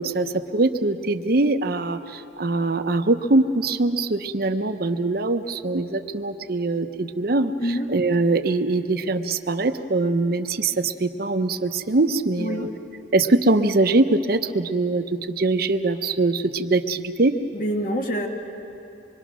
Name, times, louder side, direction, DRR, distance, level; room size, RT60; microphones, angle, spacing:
voice 1, 0.0-7.5 7.9-12.7 13.1-17.3, right 2 dB, 55° right, 8 dB, 0.8 m, -22 dB
voice 2, 7.6-7.9 12.4-12.7 17.5-18.3, equal, 50° left, 2 dB, 1.7 m, -26 dB
25.5 x 22.5 x 6.1 m, 3.0 s
head